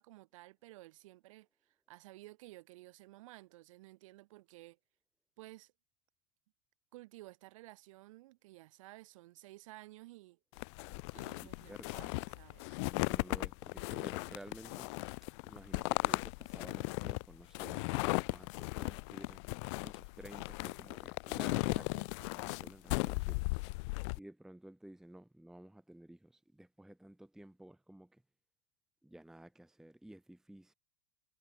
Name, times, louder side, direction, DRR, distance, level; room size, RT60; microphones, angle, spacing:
voice 1, 0.0-4.8 5.4-5.7 6.9-10.4 11.1-12.8, right 18 dB, 65° right, 5.0 m, -55 dB
sound 1, 10.6-24.2, left 28 dB, 55° left, 0.4 m, -37 dB
voice 2, 11.4-12.1 12.8-14.9 15.4-23.6 24.2-28.2 29.0-30.7, right 1 dB, 5° right, 0.7 m, -54 dB
figure-of-eight pair, 80°, 18 cm